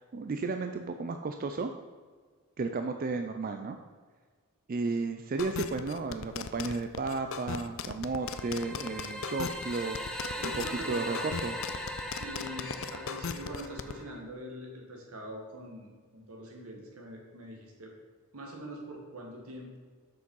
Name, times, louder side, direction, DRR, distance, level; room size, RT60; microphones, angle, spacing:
voice 1, 0.0-1.7 2.6-3.8 4.7-11.6, right 3 dB, 40° right, 6 dB, 0.4 m, -33 dB
sound 1, 5.4-13.9, left 6 dB, 60° left, 0.4 m, -37 dB
sound 2, 8.2-14.2, equal, 5° left, 0.7 m, -39 dB
voice 2, 10.4-11.2 12.2-17.9 18.3-19.8, equal, 80° right, 0 dB, 1.8 m, -43 dB
7.1 x 6.2 x 5.4 m, 1.5 s
head